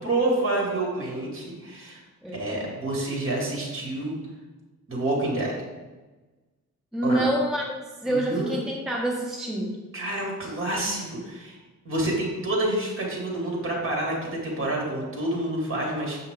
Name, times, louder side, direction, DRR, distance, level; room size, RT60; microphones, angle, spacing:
voice 1, 0.0-2.0 2.3-4.1 4.9-5.5 7.0-7.3 8.1-8.6 9.9-11.6 11.8-16.2, right 1 dB, 40° right, -2 dB, 2.6 m, -28 dB
voice 2, 6.9-9.8, right 1 dB, ahead, -2 dB, 0.8 m, -27 dB
7.9 x 5.5 x 3.8 m, 1.2 s
cardioid pair, 125°, 32 cm